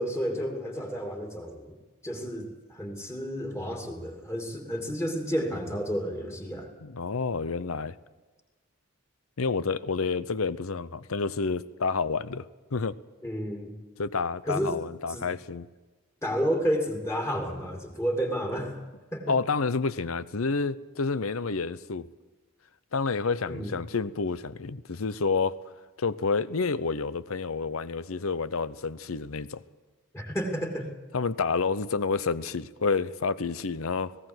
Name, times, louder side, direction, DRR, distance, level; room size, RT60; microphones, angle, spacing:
voice 1, 0.0-1.8 2.0-6.7 13.2-13.7 14.4-14.8 15.1-15.3 16.2-18.8 19.1-19.4 23.5-23.7 30.1-30.9, equal, 15° left, 2 dB, 2.8 m, -31 dB
voice 2, 6.8-8.0 9.4-12.4 12.7-13.0 14.0-15.7 19.3-22.1 22.9-25.6 26.0-29.6 31.1-34.2, left 4 dB, 80° left, 17 dB, 0.8 m, -29 dB
19.0 x 17.0 x 8.0 m, 1.2 s
head